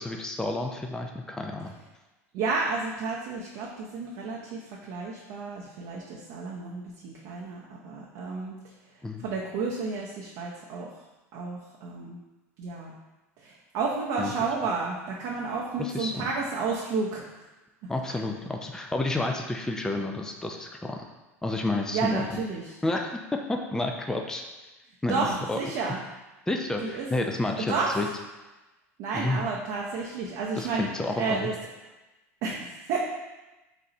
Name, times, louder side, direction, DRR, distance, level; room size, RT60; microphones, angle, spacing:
voice 1, 0.0-1.8 9.0-9.2 14.2-14.3 15.8-16.3 17.9-21.0 21.4-22.4 22.8-24.4 25.0-25.6 26.5-28.1 29.1-29.4 30.6-31.5, left 2 dB, 10° left, 3 dB, 0.4 m, -30 dB
voice 2, 2.3-8.6 9.2-10.9 11.3-12.2 12.6-12.9 13.4-17.4 21.9-22.8 25.1-26.0 26.8-27.1 27.7-28.0 29.0-30.9 31.2-31.5 32.4-33.0, right 4 dB, 60° right, -3 dB, 0.7 m, -31 dB
4.1 x 2.7 x 4.2 m, 1.1 s
hypercardioid pair, 85°, 8 cm